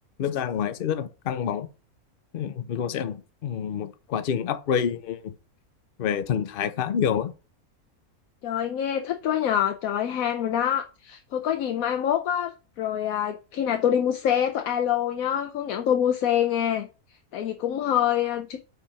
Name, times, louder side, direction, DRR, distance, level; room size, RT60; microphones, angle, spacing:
voice 1, 0.2-1.7 2.3-5.3 6.0-7.3, left 8 dB, 55° left, 0.6 m, -27 dB
voice 2, 8.4-16.9 17.3-18.6, left 10 dB, 75° left, 1.1 m, -25 dB
5.2 x 4.7 x 5.7 m
omnidirectional pair, 1.5 m